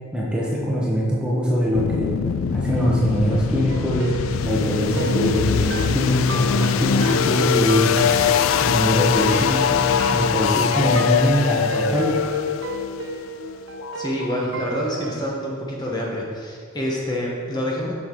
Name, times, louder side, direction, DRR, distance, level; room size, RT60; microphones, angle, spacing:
voice 1, 0.1-2.1 2.5-4.1 4.4-8.0 8.6-9.8 10.1-12.2, equal, 5° right, -6 dB, 1.0 m, -22 dB
sound 1, 1.7-14.6, left 7 dB, 85° left, 0.3 m, -23 dB
sound 2, 3.7-15.2, right 4 dB, 65° right, 0.6 m, -34 dB
voice 2, 13.9-17.9, equal, 20° left, -3 dB, 1.1 m, -27 dB
7.6 x 6.2 x 3.8 m, 2.1 s
head